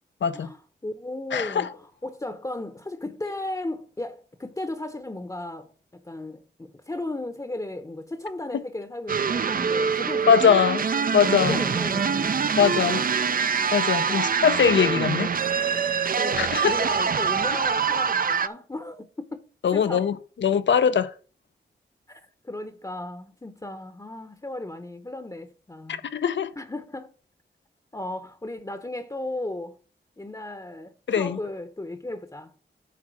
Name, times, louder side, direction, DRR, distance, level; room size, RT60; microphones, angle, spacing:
voice 1, 0.3-10.7 11.3-13.1 14.1-14.2 16.2-19.4 19.7-20.1 22.1-26.0 26.6-27.1 27.9-29.8 30.2-32.5, left 2 dB, 20° left, 0.8 m, -35 dB
voice 2, 1.3-1.7 10.3-10.8 11.1-11.6 12.6-13.0 13.7-15.3 16.4-16.7 19.6-20.2 20.4-21.1 26.1-26.5 31.1-31.4, left 7 dB, 85° left, 0.7 m, -21 dB
sound 1, 9.1-18.5, right 6 dB, 50° right, 0.5 m, -24 dB
10.5 x 3.6 x 6.0 m
wide cardioid pair, 75°, 19 cm